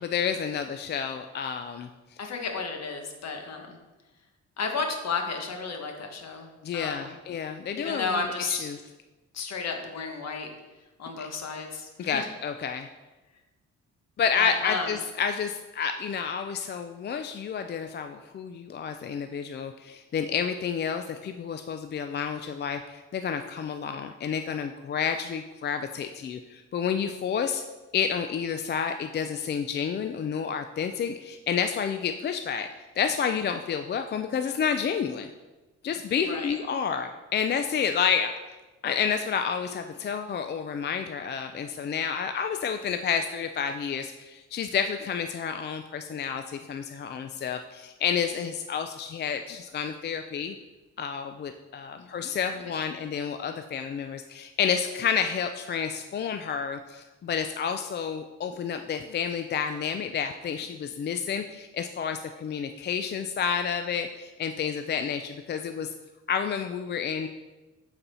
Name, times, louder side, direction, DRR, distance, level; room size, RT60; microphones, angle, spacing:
voice 1, 0.0-1.9 6.6-8.2 8.5-8.8 11.2-11.3 12.0-12.9 14.2-27.6 27.9-32.7 33.0-35.3 35.8-38.3 38.8-50.6 51.0-65.9 66.3-67.3, left 7 dB, 35° left, 7 dB, 0.4 m, -30 dB
voice 2, 2.2-3.8 4.6-6.5 6.7-7.2 7.7-8.7 9.3-10.5 11.0-12.3 14.4-14.9 36.2-36.6 52.0-52.1, left 4 dB, 60° left, 4 dB, 1.3 m, -32 dB
7.7 x 4.2 x 4.3 m, 1.1 s
cardioid pair, 90°, 30 cm